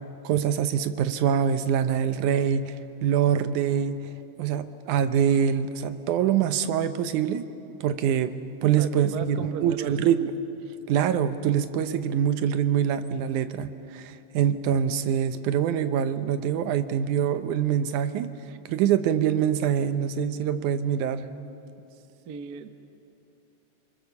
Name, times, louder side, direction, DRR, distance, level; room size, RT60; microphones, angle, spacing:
voice 1, 0.2-2.7 3.0-4.0 4.4-7.5 7.8-8.3 8.6-10.3 10.9-18.3 18.7-21.3, right 9 dB, 90° right, 11 dB, 2.4 m, -24 dB
voice 2, 8.6-10.0 22.3-22.7, right 6 dB, 70° right, 8 dB, 0.9 m, -36 dB
30.0 x 21.5 x 7.0 m, 2.8 s
omnidirectional pair, 3.4 m